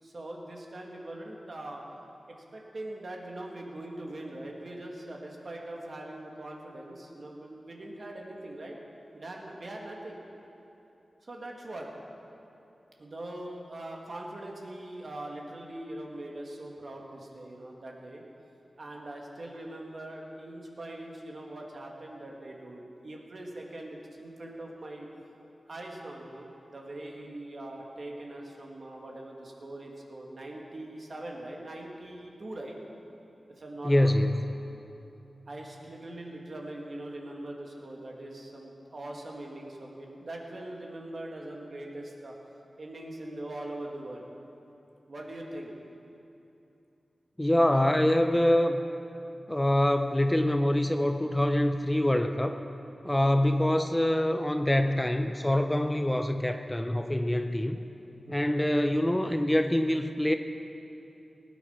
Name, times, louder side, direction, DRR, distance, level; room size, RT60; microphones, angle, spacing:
voice 1, 0.0-1.8 2.3-8.8 9.1-10.2 11.2-11.9 13.0-18.2 18.8-25.1 25.7-32.8 33.6-34.2 35.5-42.3 42.8-44.2 45.1-45.7 53.1-53.4 58.3-58.5, right 1 dB, 55° right, -1 dB, 2.1 m, -42 dB
voice 2, 33.8-34.3 47.4-48.8 49.5-52.6 53.0-57.8 58.3-60.3, left 1 dB, 10° left, 7 dB, 0.6 m, -25 dB
18.5 x 9.0 x 5.7 m, 2.8 s
wide cardioid pair, 75°, 0 cm